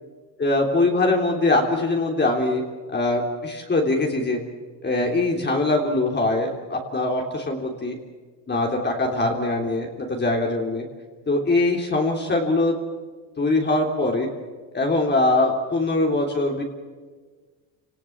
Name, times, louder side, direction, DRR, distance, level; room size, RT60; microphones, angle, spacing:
voice 1, 0.4-2.6 2.9-4.4 4.8-8.0 8.5-10.8 11.3-12.7 13.4-14.3 14.7-16.6, left 2 dB, 25° left, 0 dB, 3.4 m, -22 dB
27.5 x 19.0 x 7.3 m, 1.5 s
supercardioid pair, 100°, 45 cm